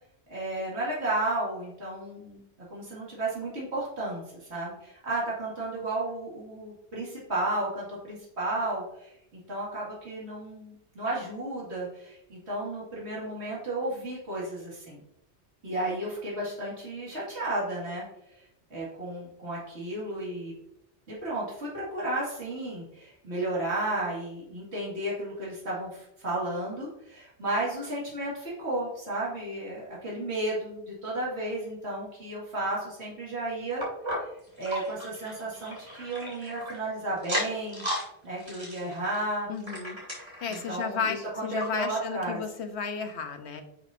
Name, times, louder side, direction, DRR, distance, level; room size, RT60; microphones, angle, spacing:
voice 1, 0.3-2.4 2.7-9.1 9.5-15.0 15.6-18.4 18.7-20.5 21.1-33.8 34.2-34.3 34.6-37.9 38.2-39.5 40.5-42.4, right 2 dB, 80° right, -6 dB, 2.6 m, -33 dB
sound 1, 33.8-36.8 37.2-38.1 38.4-40.7 41.2-41.3 41.6-41.7 42.3-42.4, equal, 25° right, 2.4 m, -35 dB
voice 2, 39.5-40.0 40.4-43.6, left 6 dB, 80° left, 6 dB, 1.2 m, -33 dB
9.9 x 6.2 x 2.7 m, 0.78 s
omnidirectional pair, 1.1 m